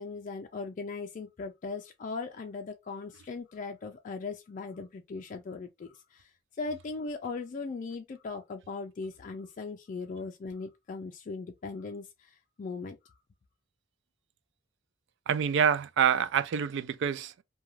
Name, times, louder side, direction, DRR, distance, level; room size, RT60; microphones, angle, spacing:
voice 1, 0.0-6.3 6.6-13.1, left 4 dB, 40° left, 0.3 m, -39 dB
voice 2, 15.3-17.4, right 7 dB, 65° right, 0.3 m, -27 dB
2.4 x 2.2 x 3.1 m
head